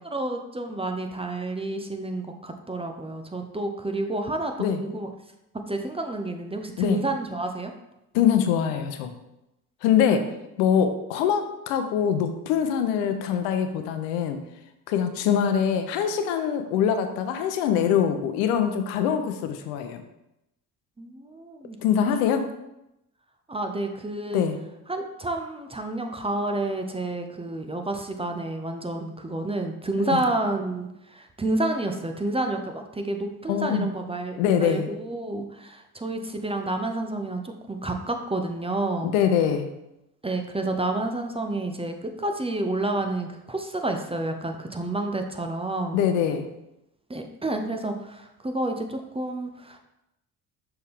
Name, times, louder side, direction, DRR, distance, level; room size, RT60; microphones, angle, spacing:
voice 1, 0.0-5.1 5.7-7.7 10.1-10.3 21.0-22.1 23.5-24.4 24.9-39.1 40.2-46.0 47.1-49.8, right 2 dB, 15° right, 4 dB, 0.7 m, -30 dB
voice 2, 8.1-9.1 9.8-10.3 10.6-14.4 14.9-20.0 21.8-22.5 24.3-24.6 30.1-30.2 33.5-33.9 34.4-34.9 39.0-39.7 45.9-46.4, left 8 dB, 70° left, 8 dB, 0.8 m, -23 dB
6.3 x 4.4 x 3.6 m, 0.88 s
figure-of-eight pair, 50°, 45 cm